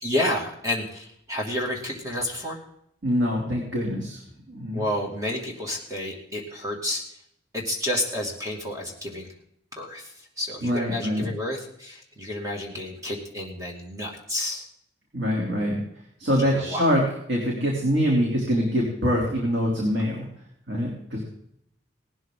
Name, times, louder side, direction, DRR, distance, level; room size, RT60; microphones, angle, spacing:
voice 1, 0.0-2.6 4.7-7.0 7.5-9.3 9.8-14.7 16.4-16.8, left 1 dB, 15° right, -1 dB, 2.4 m, -30 dB
voice 2, 3.0-4.2 4.5-4.8 10.6-11.3 15.1-15.8 16.2-17.0 17.3-20.3 20.7-21.2, equal, 85° right, -2 dB, 3.3 m, -24 dB
18.5 x 12.5 x 3.9 m, 0.72 s
head